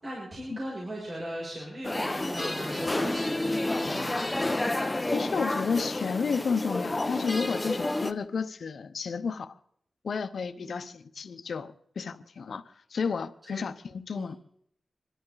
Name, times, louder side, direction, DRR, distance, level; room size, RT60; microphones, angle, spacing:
voice 1, 0.0-4.1 10.6-10.8 13.5-13.7 14.1-14.3, right 1 dB, 40° right, 7.0 m, -38 dB
sound 1, 1.8-8.1, left 2 dB, 20° left, 0.9 m, -30 dB
voice 2, 5.1-9.5 10.0-12.6 12.9-14.4, left 5 dB, 75° left, 0.9 m, -32 dB
25.5 x 12.5 x 4.0 m
wide cardioid pair, 80°, 0 cm